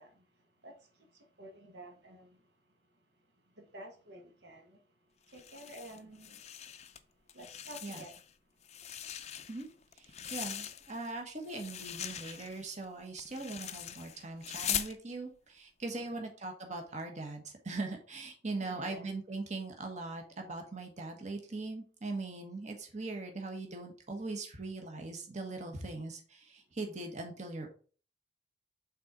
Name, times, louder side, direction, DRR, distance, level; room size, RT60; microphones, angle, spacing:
voice 1, 0.0-2.5 3.3-4.9 5.2-6.4 7.3-8.2 10.2-10.3 15.9-16.2 18.5-19.1, right 1 dB, 70° right, 1.2 m, -52 dB
sound 1, 5.3-7.0 7.3-8.3 8.6-11.1 11.4-15.0, left 10 dB, 40° left, 0.5 m, -41 dB
voice 2, 10.0-27.7, right 3 dB, 40° right, 1.3 m, -40 dB
5.8 x 3.8 x 4.7 m
head